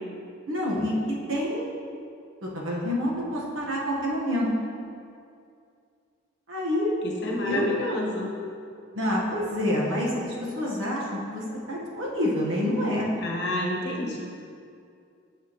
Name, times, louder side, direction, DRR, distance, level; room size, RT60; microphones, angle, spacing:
voice 1, 0.5-0.9 1.3-1.7 2.4-4.5 6.5-6.9 7.4-7.7 8.9-13.1, left 1 dB, 85° right, -4 dB, 1.3 m, -27 dB
voice 2, 7.0-8.3 13.2-14.2, left 1 dB, 60° left, -1 dB, 1.0 m, -29 dB
6.6 x 6.5 x 3.0 m, 2.4 s
head